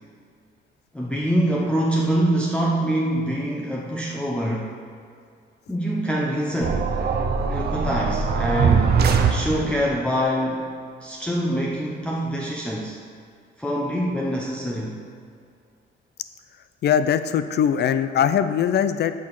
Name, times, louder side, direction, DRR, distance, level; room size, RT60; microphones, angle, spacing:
voice 1, 0.9-4.8 5.7-6.9 7.5-9.0 9.3-10.8 11.0-13.0 13.6-15.0, equal, 5° left, -4 dB, 0.8 m, -25 dB
sound 1, 6.6-10.0, right 5 dB, 55° right, 0.7 m, -21 dB
voice 2, 16.8-19.1, left 8 dB, 55° left, 12 dB, 0.4 m, -21 dB
6.0 x 4.9 x 5.9 m, 2.3 s
cardioid pair, 90°, 20 cm